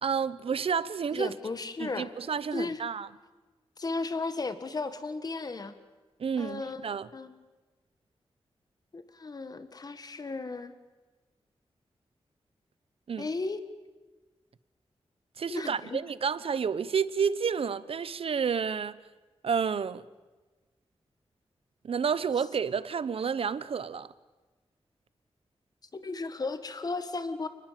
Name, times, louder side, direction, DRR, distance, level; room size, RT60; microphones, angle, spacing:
voice 1, 0.0-1.3 1.8-3.1 6.2-7.1 13.1-13.3 15.4-19.0 19.4-20.0 21.8-24.1, right 6 dB, 65° right, 0.9 m, -30 dB
voice 2, 1.1-2.1 2.5-2.8 3.8-5.7 6.4-6.8 7.1-7.3 8.9-10.7 13.2-13.6 15.5-16.0 25.9-27.5, left 3 dB, 40° left, 1.8 m, -35 dB
29.0 x 20.0 x 7.6 m
wide cardioid pair, 135°, 10 cm